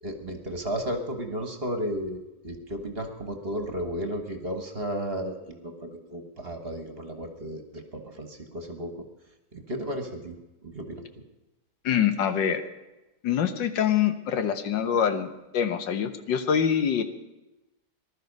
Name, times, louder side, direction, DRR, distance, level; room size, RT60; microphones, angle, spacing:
voice 1, 0.0-9.0 9.5-10.4 10.6-11.2, equal, 35° right, 6 dB, 1.7 m, -34 dB
voice 2, 11.8-12.6 13.2-17.0, left 8 dB, 80° left, 9 dB, 1.8 m, -25 dB
19.5 x 12.5 x 5.4 m, 1.0 s
omnidirectional pair, 1.9 m